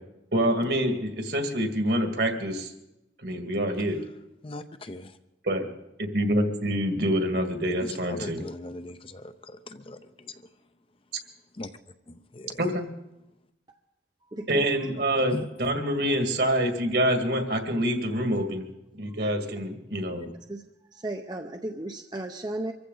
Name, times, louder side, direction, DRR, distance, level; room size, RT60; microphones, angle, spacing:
voice 1, 0.3-2.7 3.2-4.0 5.4-5.7 6.0-8.4 12.6-12.9 14.5-18.6 18.9-20.3, equal, 65° right, 5 dB, 2.0 m, -26 dB
voice 2, 4.4-5.2 7.8-10.5 11.5-11.7 12.1-12.7 15.3-15.4, left 2 dB, 30° left, 10 dB, 0.6 m, -40 dB
voice 3, 14.3-14.9 19.2-19.3 20.5-20.6 20.9-22.7, right 1 dB, 25° right, 4 dB, 0.6 m, -34 dB
25.0 x 14.5 x 3.9 m, 0.92 s
head